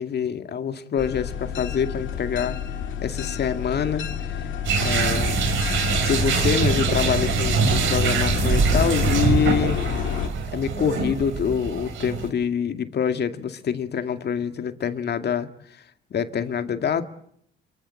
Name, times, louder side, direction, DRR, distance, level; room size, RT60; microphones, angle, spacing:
voice 1, 0.0-2.6 3.0-4.5 4.8-5.4 5.9-9.8 10.5-15.5 16.1-17.0, left 7 dB, 55° left, 8 dB, 2.2 m, -26 dB
sound 1, 1.0-10.3, left 8 dB, 70° left, 2.4 m, -29 dB
sound 2, 4.6-12.3, right 5 dB, 75° right, 4.3 m, -24 dB
27.5 x 23.5 x 7.7 m, 0.70 s
cardioid pair, 90°, 20 cm